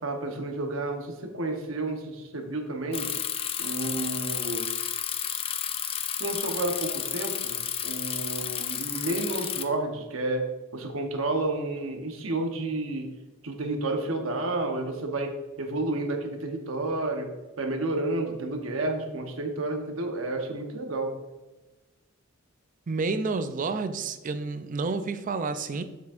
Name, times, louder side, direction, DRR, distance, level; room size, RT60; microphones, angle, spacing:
voice 1, 0.0-3.1 3.6-4.7 6.2-13.1 13.4-17.3 17.6-21.1, right 2 dB, 70° right, 4 dB, 1.0 m, -31 dB
Bicycle, 2.9-9.6, left 9 dB, 25° left, 0.4 m, -31 dB
voice 2, 22.9-25.8, right 4 dB, 40° right, 11 dB, 0.4 m, -30 dB
7.3 x 5.9 x 2.5 m, 1.1 s
head